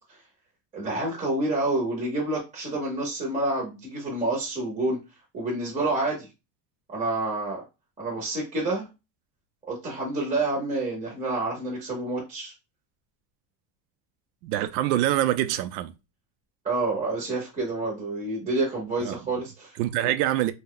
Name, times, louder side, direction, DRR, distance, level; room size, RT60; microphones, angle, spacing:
voice 1, 0.7-5.0 5.3-6.3 6.9-7.6 8.0-8.9 9.7-12.5 16.6-20.1, right 2 dB, 15° right, 0.6 m, -28 dB
voice 2, 14.4-15.9 19.0-19.2 19.8-20.5, right 13 dB, 80° right, 0.5 m, -25 dB
2.7 x 2.2 x 3.6 m
supercardioid pair, 160°, 47 cm